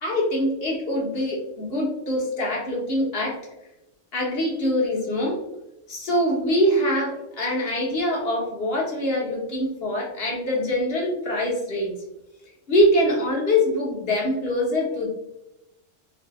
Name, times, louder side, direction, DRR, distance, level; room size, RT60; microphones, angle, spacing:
voice 1, 0.0-3.4 4.1-5.4 5.9-11.9 12.7-15.1, left 1 dB, 55° left, -2 dB, 1.1 m, -24 dB
3.8 x 2.7 x 2.2 m, 0.91 s
omnidirectional pair, 1.3 m